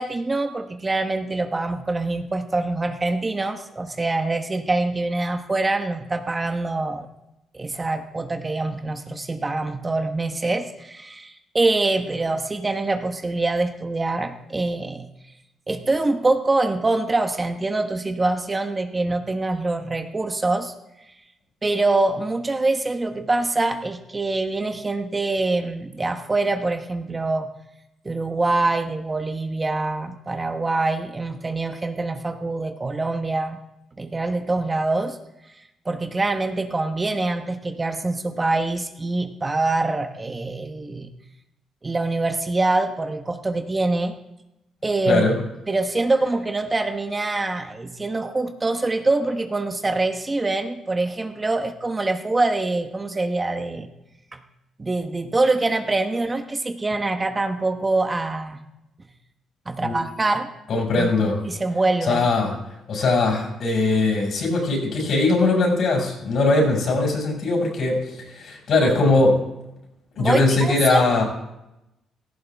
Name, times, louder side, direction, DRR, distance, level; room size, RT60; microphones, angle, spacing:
voice 1, 0.0-7.1 7.5-15.1 15.7-20.7 21.6-27.5 28.0-33.6 34.0-35.2 35.8-41.1 41.8-44.2 44.8-45.2 45.7-53.9 54.3-54.4 54.8-58.6 59.7-60.5 61.0-61.1 61.4-62.3 70.2-71.1, right 2 dB, 25° right, 7 dB, 1.2 m, -24 dB
voice 2, 45.1-45.4 59.8-60.0 60.7-61.4 62.1-62.6 62.9-69.4 70.2-71.2, left 3 dB, 60° left, 0 dB, 5.8 m, -20 dB
17.0 x 14.5 x 3.5 m, 0.90 s
cardioid pair, 90°, 0 cm